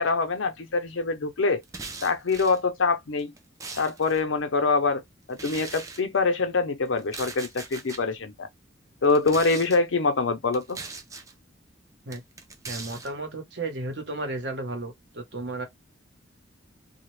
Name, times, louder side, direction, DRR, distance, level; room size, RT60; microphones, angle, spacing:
voice 1, 0.0-1.6 2.0-3.3 3.8-5.0 5.3-8.5 9.0-10.8, left 4 dB, 90° left, 0.6 m, -24 dB
sound 1, 1.6-2.6 3.2-4.2 5.3-6.0 7.0-8.0 9.0-9.8 10.5-11.3 12.1-13.1, right 3 dB, 15° right, 0.4 m, -40 dB
voice 2, 12.7-15.7, right 2 dB, 65° right, 1.0 m, -33 dB
2.3 x 2.1 x 3.1 m
head